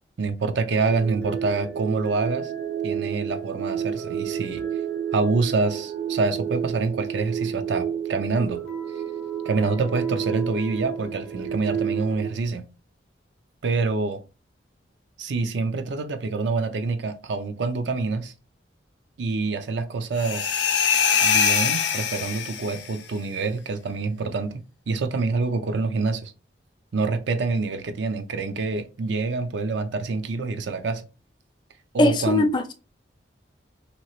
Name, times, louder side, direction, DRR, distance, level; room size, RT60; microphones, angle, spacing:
voice 1, 0.2-2.5 2.8-4.6 5.1-8.6 9.4-12.6 13.6-14.2 15.2-18.3 19.2-20.8 21.2-24.6 24.9-26.3 26.9-31.1 31.9-32.5, right 4 dB, 70° right, 0.4 m, -26 dB
sound 1, 0.7-12.3, right 8 dB, 55° right, 1.0 m, -31 dB
sound 2, 20.2-22.9, left 7 dB, 70° left, 0.5 m, -23 dB
voice 2, 32.0-32.7, left 2 dB, 25° left, 0.3 m, -20 dB
2.9 x 2.8 x 2.9 m
head